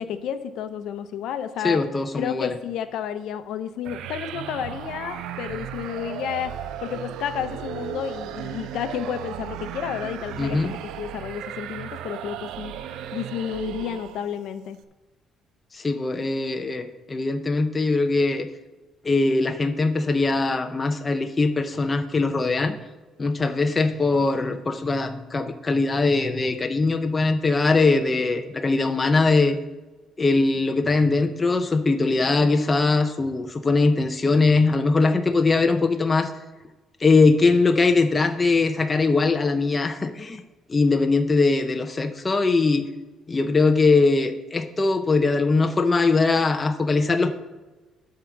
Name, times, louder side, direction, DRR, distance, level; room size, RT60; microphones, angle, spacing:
voice 1, 0.0-1.8 2.2-6.5 6.8-12.7 13.1-14.8, left 9 dB, 65° left, 10 dB, 0.6 m, -31 dB
voice 2, 1.6-2.5 10.4-10.7 15.7-18.5 19.0-22.8 23.2-29.6 30.2-36.3 37.0-40.4 40.7-42.9 43.3-47.3, left 3 dB, 15° left, 6 dB, 0.4 m, -21 dB
sound 1, 3.8-14.4, right 10 dB, 75° right, 0.4 m, -35 dB
10.5 x 3.7 x 6.8 m, 1.2 s
cardioid pair, 175°, 0 cm